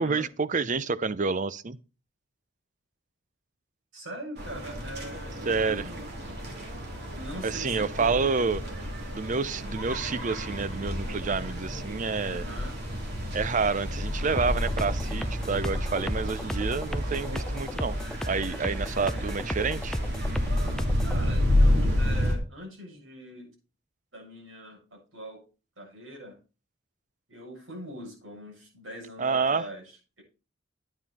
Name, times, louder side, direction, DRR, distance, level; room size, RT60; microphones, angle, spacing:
voice 1, 0.0-1.8 5.5-5.9 7.4-8.6 9.1-12.4 13.3-18.0 18.3-20.0 29.2-29.7, right 4 dB, 40° right, 0.6 m, -28 dB
voice 2, 3.9-6.1 7.1-8.1 12.2-12.8 21.0-23.5 24.1-25.4 25.8-26.4 27.3-30.2, equal, 75° right, 7.4 m, -42 dB
sound 1, 4.4-22.4, left 1 dB, 55° right, 3.0 m, -30 dB
sound 2, 14.4-21.2, equal, 5° left, 0.6 m, -34 dB
11.0 x 9.1 x 4.2 m
head